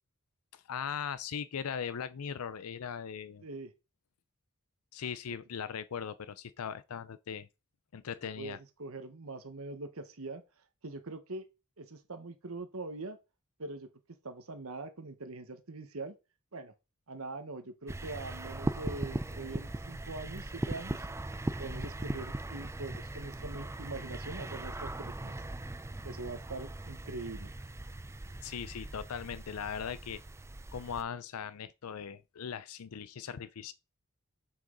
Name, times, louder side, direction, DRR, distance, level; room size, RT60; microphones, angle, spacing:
voice 1, 0.5-3.5 4.9-7.5 7.9-8.6 28.4-30.2 30.7-33.7, left 7 dB, 80° left, 0.5 m, -39 dB
voice 2, 8.4-10.4 10.8-11.5 11.8-13.2 13.6-13.9 14.2-16.1 16.5-16.7 17.1-21.1 21.6-25.3 26.0-27.5, right 3 dB, 70° right, 1.2 m, -43 dB
sound 1, 17.9-31.0, right 1 dB, 15° right, 0.5 m, -39 dB
7.6 x 6.5 x 3.9 m
head